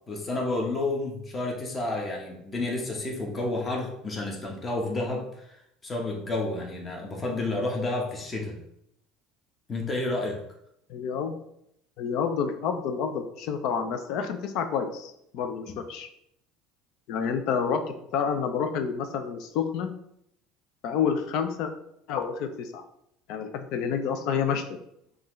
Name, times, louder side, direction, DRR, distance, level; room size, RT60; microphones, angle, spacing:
voice 1, 0.1-8.6 9.7-10.4 15.7-15.8, left 2 dB, 25° left, 0 dB, 1.0 m, -30 dB
voice 2, 10.9-11.4 12.0-16.1 17.1-17.8 18.1-19.9 20.8-21.7 22.1-22.8 23.3-24.8, left 7 dB, 65° left, 7 dB, 0.5 m, -29 dB
5.3 x 2.5 x 3.1 m, 0.75 s
supercardioid pair, 115°, 0 cm